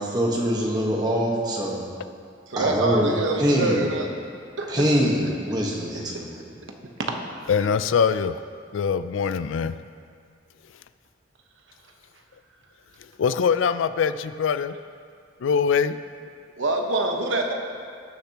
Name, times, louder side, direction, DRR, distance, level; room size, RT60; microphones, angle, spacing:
voice 1, 0.0-1.9 2.6-3.9 4.7-6.6, equal, 20° right, -2 dB, 1.3 m, -24 dB
voice 2, 2.5-4.1 4.6-4.8 16.6-17.5, right 2 dB, 85° right, 2 dB, 1.1 m, -25 dB
voice 3, 7.5-8.3 8.7-9.7 13.2-14.7 15.4-16.0, left 6 dB, 85° left, 12 dB, 0.4 m, -22 dB
18.0 x 6.8 x 2.9 m, 2.2 s
head